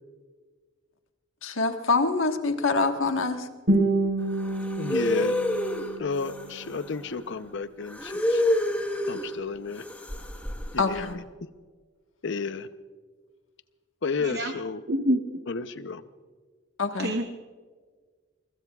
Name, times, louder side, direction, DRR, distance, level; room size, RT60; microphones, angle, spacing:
voice 1, 1.4-3.5 10.8-11.2 16.8-17.1, left 3 dB, 85° left, 5 dB, 1.4 m, -25 dB
Guitar, 3.7-6.7, right 2 dB, 80° right, 4.7 m, -28 dB
sound 1, 4.3-7.0 7.8-9.3 9.7-11.0, left 1 dB, 10° left, 1.3 m, -28 dB
voice 2, 4.8-5.3 6.0-8.4 9.1-9.8 10.7-11.2 12.2-12.7 14.0-14.8 15.5-16.0, left 4 dB, 65° left, 11 dB, 0.7 m, -32 dB
voice 3, 14.2-14.5 14.9-15.5 17.0-17.2, right 1 dB, 55° right, 6 dB, 0.9 m, -27 dB
23.5 x 21.5 x 2.4 m, 1.5 s
head